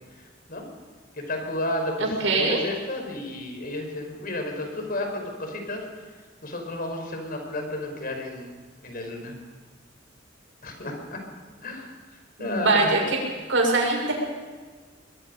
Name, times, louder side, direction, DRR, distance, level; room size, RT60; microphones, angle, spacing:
voice 1, 0.1-0.7 1.1-9.4 10.6-11.2 11.6-12.9, left 1 dB, 50° left, 3 dB, 5.1 m, -32 dB
voice 2, 2.0-2.6 12.4-13.0 13.5-14.1, right 2 dB, 80° right, -1 dB, 7.3 m, -22 dB
25.0 x 22.0 x 5.5 m, 1.5 s
head